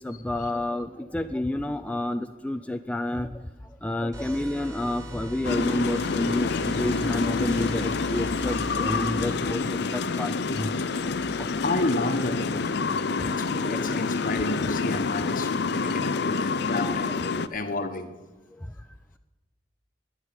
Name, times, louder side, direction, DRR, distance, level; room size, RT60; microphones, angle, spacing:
voice 1, 0.0-3.4 3.8-10.7 11.4-11.5 12.9-14.5 16.9-17.0, left 1 dB, 5° left, 8 dB, 0.5 m, -30 dB
sound 1, 4.1-13.8, equal, 20° right, 3.8 m, -40 dB
sound 2, 5.4-17.5, left 4 dB, 65° left, 0.6 m, -27 dB
voice 2, 11.6-18.1, left 2 dB, 50° left, 8 dB, 1.3 m, -31 dB
12.0 x 10.5 x 9.5 m, 1.1 s
head